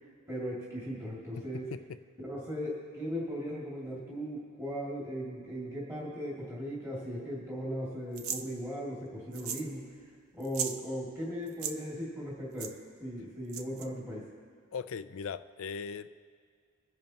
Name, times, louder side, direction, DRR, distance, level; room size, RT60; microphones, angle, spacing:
voice 1, 0.3-1.7 2.2-10.1 10.3-14.3, equal, 15° right, -6 dB, 2.4 m, -38 dB
sound 1, 8.2-8.4 9.3-9.7 10.0-10.1 10.4-10.8 11.5-11.7 12.6-12.7 13.5-13.9, right 8 dB, 70° right, 0.7 m, -36 dB
voice 2, 14.7-16.1, left 6 dB, 65° left, 12 dB, 0.4 m, -38 dB
23.5 x 10.5 x 2.9 m, 2.2 s
head